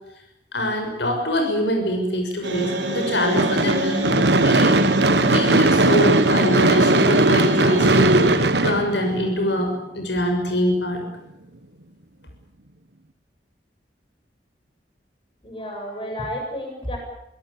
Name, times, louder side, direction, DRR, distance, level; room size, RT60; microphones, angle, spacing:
voice 1, 0.5-4.1 4.4-4.8 5.1-11.0, left 1 dB, 85° left, 4 dB, 6.4 m, -24 dB
sound 1, 2.4-8.4, right 1 dB, 85° right, 4.6 m, -23 dB
Gunshot gunfire / Fireworks, 3.4-9.6, right 2 dB, 70° right, 1.4 m, -19 dB
voice 2, 15.4-17.0, equal, 30° left, 2 dB, 7.7 m, -31 dB
26.0 x 18.0 x 8.8 m, 0.84 s
head